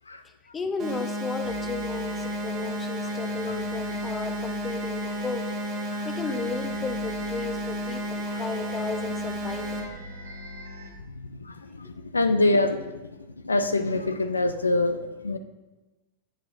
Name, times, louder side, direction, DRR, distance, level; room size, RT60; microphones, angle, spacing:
voice 1, 0.5-5.5 6.0-9.8, left 4 dB, 20° left, 8 dB, 0.7 m, -34 dB
sound 1, 0.8-9.8, equal, 40° right, 2.0 m, -32 dB
sound 2, 1.4-10.9, right 2 dB, 75° right, 1.3 m, -42 dB
voice 2, 11.0-13.0 13.4-15.4, left 2 dB, 85° left, 9 dB, 0.4 m, -26 dB
10.0 x 7.7 x 2.6 m, 1.1 s
figure-of-eight pair, 90°, 0 cm